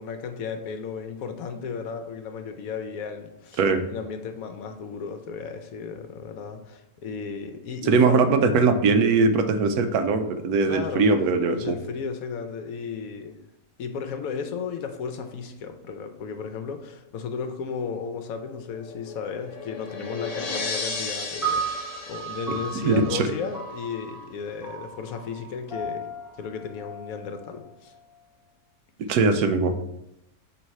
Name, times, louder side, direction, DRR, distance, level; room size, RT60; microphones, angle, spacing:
voice 1, 0.0-3.6 3.9-8.2 10.7-11.1 11.5-13.4 13.8-26.1 26.4-27.9, left 6 dB, 70° left, 7 dB, 1.1 m, -34 dB
voice 2, 7.8-11.8 22.8-23.3 29.1-29.7, right 4 dB, 80° right, 8 dB, 1.1 m, -21 dB
sound 1, 18.5-23.6, left 4 dB, 40° left, 0.5 m, -35 dB
sound 2, 21.4-27.9, right 4 dB, ahead, 2.1 m, -35 dB
7.8 x 3.2 x 4.1 m, 0.85 s
omnidirectional pair, 1.6 m